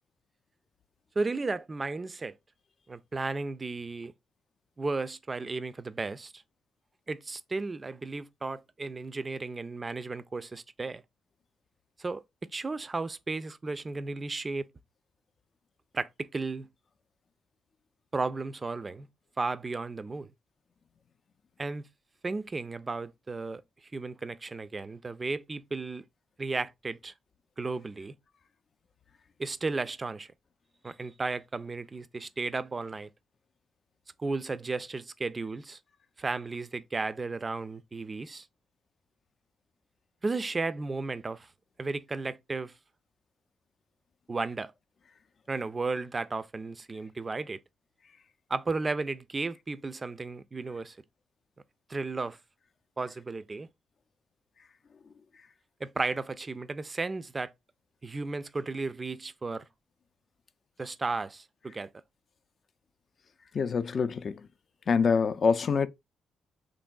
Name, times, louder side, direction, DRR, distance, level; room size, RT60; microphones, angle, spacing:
voice 1, 1.2-2.4 2.9-4.1 4.8-6.4 7.1-11.0 12.0-12.2 12.5-14.7 15.9-16.7 18.1-19.1 19.4-20.3 21.6-21.8 22.2-23.6 23.9-26.1 26.4-27.1 27.6-28.1 29.4-30.3 30.8-33.1 34.2-35.8 36.2-38.5 40.2-41.5 41.8-42.7 44.3-44.7 45.5-47.6 48.5-51.0 51.9-52.4 53.0-53.7 55.8-57.5 58.0-59.7 60.8-61.9, right 3 dB, 35° right, 0.3 m, -34 dB
voice 2, 63.5-64.4 64.9-65.9, left 5 dB, 55° left, 0.3 m, -25 dB
3.0 x 2.6 x 2.2 m
hypercardioid pair, 45°, 0 cm